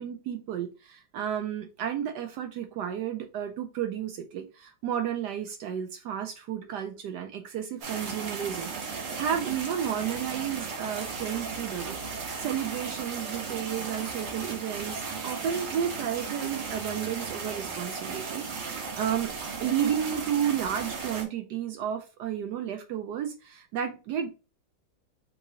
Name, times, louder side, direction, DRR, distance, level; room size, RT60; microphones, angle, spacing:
voice 1, 0.0-12.0 12.4-19.3 19.6-24.3, right 9 dB, 80° right, 0.9 m, -32 dB
sound 1, 7.8-21.3, right 5 dB, 65° right, 1.7 m, -36 dB
3.6 x 3.0 x 3.7 m
omnidirectional pair, 2.3 m